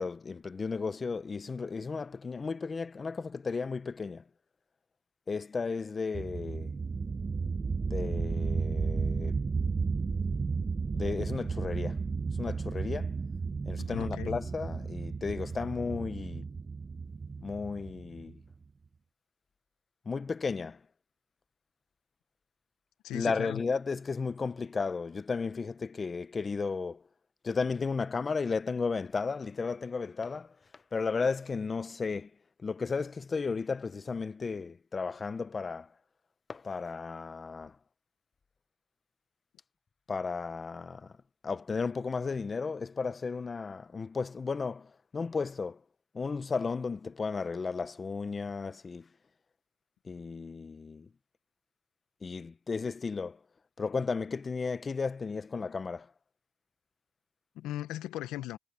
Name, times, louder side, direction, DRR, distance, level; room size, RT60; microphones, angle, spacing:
voice 1, 0.0-4.2 5.3-6.7 7.9-9.4 10.9-12.0 12.4-13.1 13.7-16.5 17.4-18.4 20.0-20.8 23.1-27.0 27.4-30.6 30.9-32.3 32.6-35.9 36.5-37.8 40.1-41.1 41.4-45.8 46.1-49.1 50.0-51.1 52.2-53.4 53.8-56.1, left 4 dB, 35° left, 0.9 m, -34 dB
sound 1, 6.1-18.5, right 4 dB, 35° right, 1.1 m, -33 dB
voice 2, 13.8-14.4 23.0-23.6 57.6-58.6, left 14 dB, 90° left, 0.8 m, -38 dB
cardioid pair, 75°, 0 cm